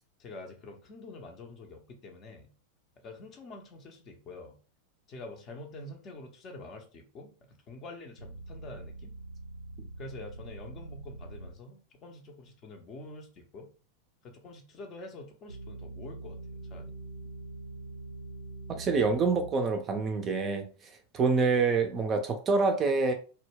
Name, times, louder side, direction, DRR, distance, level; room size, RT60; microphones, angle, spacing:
voice 1, 0.2-2.5 3.0-4.6 5.1-7.3 7.7-9.1 10.0-13.7 14.2-16.4 16.7-16.9, left 2 dB, 30° left, 3 dB, 0.5 m, -46 dB
sound 1, 8.2-11.6 15.5-19.5, right 2 dB, 90° right, 0.5 m, -44 dB
voice 2, 18.7-20.7 21.1-23.1, right 4 dB, 25° right, 5 dB, 0.4 m, -26 dB
2.1 x 2.1 x 3.2 m, 0.38 s
figure-of-eight pair, 90°, 0 cm